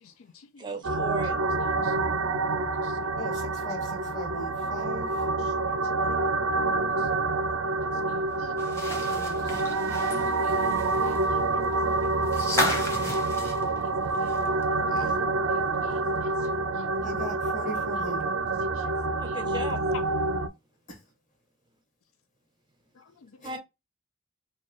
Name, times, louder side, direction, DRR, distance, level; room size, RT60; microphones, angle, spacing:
voice 1, 0.6-1.3 14.9-15.2 19.2-19.8 23.4-23.6, right 3 dB, 20° right, 0.5 m, -36 dB
sound 1, 0.8-20.5, right 3 dB, 75° right, 0.6 m, -27 dB
voice 2, 1.8-3.0 5.6-5.8 8.0-8.1 8.4-8.5 11.0-11.1 11.5-11.6 15.8-15.9 16.2-16.3 18.8-18.9 19.3-19.4 19.9-20.0, left 6 dB, 75° left, 0.4 m, -47 dB
voice 3, 3.2-5.3 8.8-10.4 17.0-18.4 20.9-21.0 23.4-23.6, equal, 35° left, 1.5 m, -39 dB
sound 2, 8.6-14.6 15.0-15.1 16.4-16.5, left 1 dB, 15° left, 1.0 m, -33 dB
4.5 x 2.3 x 3.0 m
head